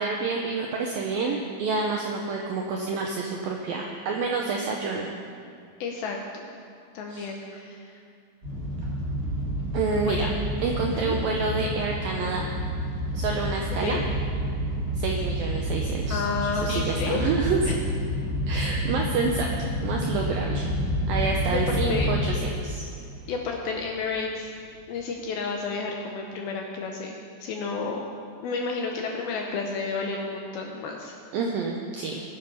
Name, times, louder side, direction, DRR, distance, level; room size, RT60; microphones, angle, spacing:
voice 1, 0.0-5.1 7.1-7.3 9.7-10.3 10.6-12.5 13.1-14.0 14.9-17.6 18.5-19.5 19.8-20.7 21.1-22.8 31.3-32.2, right 4 dB, 85° right, 0 dB, 2.0 m, -28 dB
voice 2, 5.8-6.5 6.9-7.9 10.0-10.3 11.1-11.2 13.8-14.0 16.1-17.3 17.7-17.8 21.5-22.1 23.3-24.5 24.9-28.1 28.4-31.1, left 4 dB, 75° left, 1 dB, 2.3 m, -31 dB
sound 1, 8.4-22.6 22.9-23.3 23.7-23.8 24.1-24.2, equal, 25° right, 2.0 m, -29 dB
18.5 x 7.2 x 5.6 m, 2.3 s
omnidirectional pair, 5.1 m